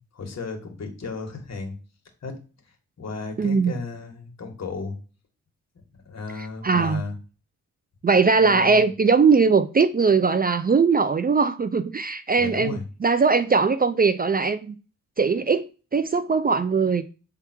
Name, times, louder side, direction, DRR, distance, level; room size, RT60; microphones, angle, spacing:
voice 1, 0.1-1.8 2.2-2.4 3.0-4.9 6.1-7.1 8.4-8.8 12.4-12.8, left 4 dB, 55° left, 1.9 m, -34 dB
voice 2, 3.4-3.7 6.4-7.0 8.0-14.7 15.2-17.0, right 4 dB, 30° right, 0.4 m, -20 dB
7.9 x 3.6 x 4.5 m
cardioid pair, 100°, 32 cm